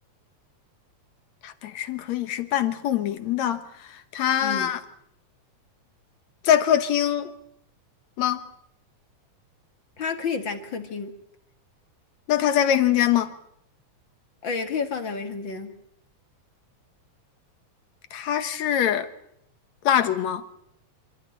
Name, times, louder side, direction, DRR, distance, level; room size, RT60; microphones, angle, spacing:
voice 1, 1.4-4.8 6.4-7.3 8.2-8.4 12.3-13.3 18.1-19.1 19.8-20.4, left 10 dB, 70° left, 2.5 m, -23 dB
voice 2, 10.0-11.2 14.4-15.8, left 5 dB, 45° left, 2.3 m, -30 dB
26.5 x 14.5 x 10.0 m
omnidirectional pair, 3.3 m